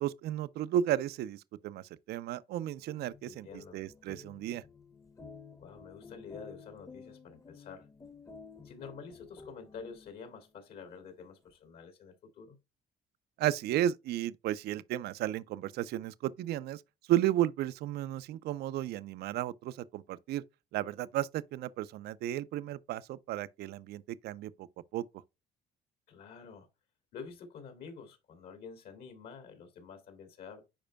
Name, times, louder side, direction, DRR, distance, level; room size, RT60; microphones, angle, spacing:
voice 1, 0.0-3.5 3.7-4.6 13.4-16.8 17.1-20.4 20.7-24.7 24.9-25.0, right 12 dB, 70° right, 0.5 m, -33 dB
sound 1, 2.8-10.4, left 4 dB, 20° left, 0.8 m, -52 dB
voice 2, 3.2-3.8 5.6-7.9 8.6-12.6 26.1-26.7 27.1-30.6, left 5 dB, 70° left, 2.6 m, -48 dB
10.0 x 4.4 x 2.2 m
cardioid pair, 110°, 17 cm